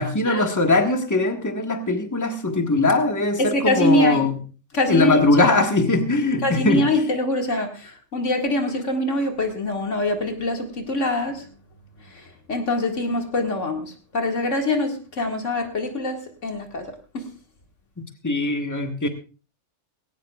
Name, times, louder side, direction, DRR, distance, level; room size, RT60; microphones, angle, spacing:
voice 1, 0.0-4.4 4.9-7.0 18.0-19.1, left 2 dB, 15° left, 5 dB, 1.3 m, -21 dB
voice 2, 3.4-4.3 4.7-5.6 6.4-11.4 12.5-16.9 17.1-17.3, left 1 dB, 85° left, 3 dB, 2.4 m, -24 dB
18.0 x 17.5 x 2.4 m, 0.35 s
omnidirectional pair, 1.2 m